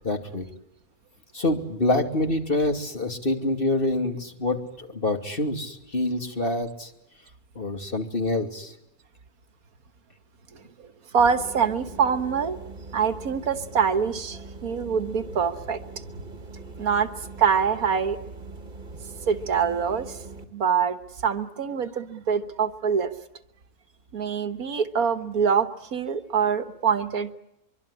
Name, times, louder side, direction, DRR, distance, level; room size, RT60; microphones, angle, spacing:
voice 1, 0.0-0.5 1.3-6.9 7.5-8.7, left 2 dB, 35° left, 5 dB, 2.9 m, -26 dB
voice 2, 10.5-10.9 11.1-12.6 12.9-16.0 16.8-17.1 17.4-18.2 19.3-20.2 20.5-23.1 24.1-27.3, right 6 dB, 70° right, 11 dB, 1.7 m, -25 dB
sound 1, 11.2-20.4, right 3 dB, 30° right, 1.8 m, -42 dB
24.0 x 24.0 x 9.9 m, 0.81 s
omnidirectional pair, 1.6 m